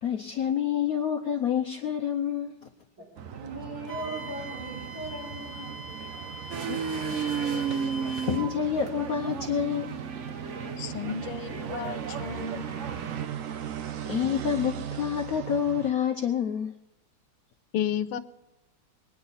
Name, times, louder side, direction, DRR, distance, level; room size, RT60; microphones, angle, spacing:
voice 1, 0.0-2.5 6.7-7.0 8.2-10.1 14.1-16.7, left 8 dB, 65° left, 0.9 m, -28 dB
sound 1, 3.2-15.9, right 10 dB, 90° right, 0.7 m, -39 dB
voice 2, 3.3-5.7 6.2-6.3, right 1 dB, 75° right, 7.0 m, -39 dB
Wind instrument woodwind instrument, 3.9-8.5, right 2 dB, 25° right, 1.9 m, -41 dB
sound 2, 6.5-13.3, right 6 dB, 55° right, 0.8 m, -34 dB
voice 3, 10.8-12.6 17.7-18.2, left 9 dB, 85° left, 1.7 m, -32 dB
23.5 x 9.5 x 4.1 m
omnidirectional pair, 2.4 m